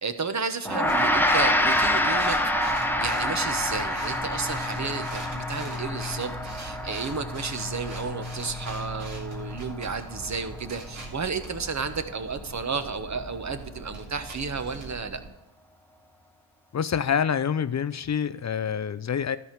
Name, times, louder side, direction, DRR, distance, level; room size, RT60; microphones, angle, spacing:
voice 1, 0.0-2.7 3.0-6.3 6.6-15.2, right 5 dB, 35° right, 9 dB, 1.1 m, -32 dB
Gong, 0.7-10.2, left 1 dB, 5° left, 1.0 m, -27 dB
sound 1, 0.9-15.3, left 1 dB, 70° right, 3.0 m, -39 dB
voice 2, 16.7-19.4, left 7 dB, 35° left, 14 dB, 0.5 m, -26 dB
12.5 x 4.4 x 7.4 m, 0.94 s
supercardioid pair, 55°, 50 cm